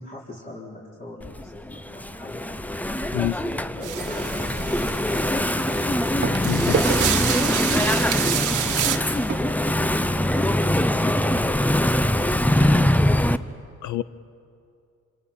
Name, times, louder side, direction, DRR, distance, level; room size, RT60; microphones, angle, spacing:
voice 1, 0.0-2.4 3.1-5.3 7.6-11.3 11.6-13.3, left 1 dB, 30° left, -6 dB, 4.3 m, -40 dB
Engine / Mechanisms, 1.2-13.4, left 1 dB, 5° left, 0.6 m, -23 dB
sound 1, 3.8-9.0, right 11 dB, 85° right, 1.4 m, -28 dB
sound 2, 6.2-10.6 11.4-11.5 11.7-11.9 12.4-12.5, right 6 dB, 40° right, 0.9 m, -33 dB
voice 2, 6.4-6.8 13.8-14.0, left 13 dB, 75° left, 14 dB, 0.7 m, -26 dB
27.0 x 26.0 x 5.8 m, 2.4 s
cardioid pair, 90°, 30 cm